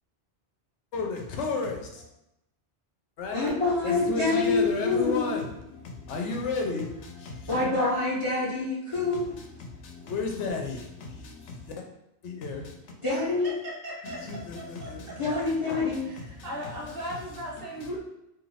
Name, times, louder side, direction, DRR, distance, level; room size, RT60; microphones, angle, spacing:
voice 1, 0.9-2.0 3.2-3.5 3.8-7.7 8.9-11.7 12.2-12.7 14.0-15.6 15.9-17.0 17.7-17.9, left 3 dB, 85° left, 1.0 m, -34 dB
voice 2, 3.3-5.4 7.4-9.3 13.0-13.5 15.2-16.0, left 3 dB, 30° left, 0.7 m, -26 dB
voice 3, 13.1-14.2 14.6-15.4 16.1-18.0, equal, 55° right, 1.1 m, -38 dB
2.9 x 2.5 x 3.1 m
omnidirectional pair, 1.2 m